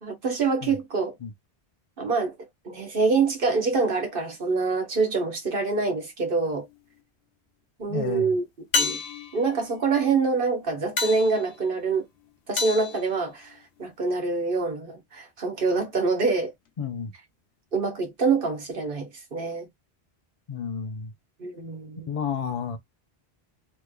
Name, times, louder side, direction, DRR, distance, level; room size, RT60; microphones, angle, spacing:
voice 1, 0.0-1.1 2.0-2.3 2.6-6.6 7.8-8.4 8.7-9.0 9.3-12.1 12.5-16.5 17.7-19.7 21.4-22.1, right 4 dB, 55° right, 1.4 m, -25 dB
sound 1, 6.4-7.0 8.7-13.9 18.3-18.4, left 4 dB, 80° left, 1.0 m, -32 dB
voice 2, 7.9-8.3 16.8-17.1 20.5-21.1 22.1-22.8, left 6 dB, 40° left, 0.6 m, -31 dB
3.4 x 3.0 x 2.3 m
omnidirectional pair, 1.1 m